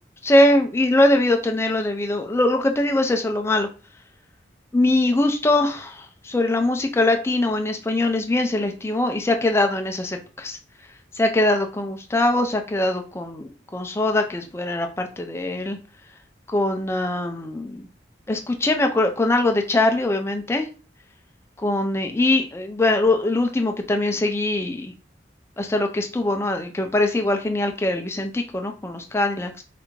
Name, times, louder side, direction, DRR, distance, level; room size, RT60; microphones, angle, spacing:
voice 1, 0.2-3.7 4.7-10.6 11.1-15.8 16.5-17.9 18.3-20.7 21.6-24.9 25.6-29.6, left 2 dB, 15° left, 4 dB, 0.3 m, -22 dB
3.3 x 2.5 x 3.1 m, 0.35 s
head